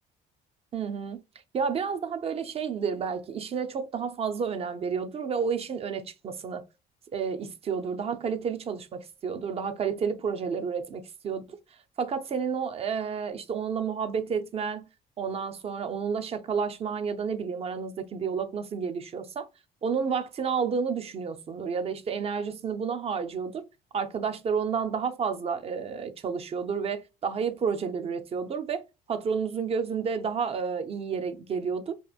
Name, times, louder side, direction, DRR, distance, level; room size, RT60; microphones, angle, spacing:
voice 1, 0.7-1.2 1.5-6.6 7.1-11.4 12.0-14.9 15.2-19.5 19.8-23.7 23.9-28.8 29.1-31.9, right 6 dB, 35° right, 0.5 m, -30 dB
2.9 x 2.4 x 2.3 m
cardioid pair, 110°, 17 cm